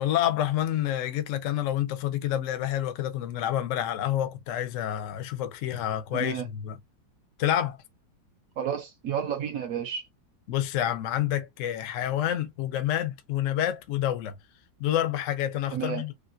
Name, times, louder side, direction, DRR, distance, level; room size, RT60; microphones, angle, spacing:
voice 1, 0.0-6.7 7.4-7.8 10.5-14.4 14.8-16.1, left 11 dB, 80° left, 0.7 m, -28 dB
voice 2, 6.1-6.5 8.6-10.0 15.7-16.0, right 8 dB, 70° right, 0.8 m, -31 dB
3.4 x 2.5 x 2.5 m
omnidirectional pair, 2.0 m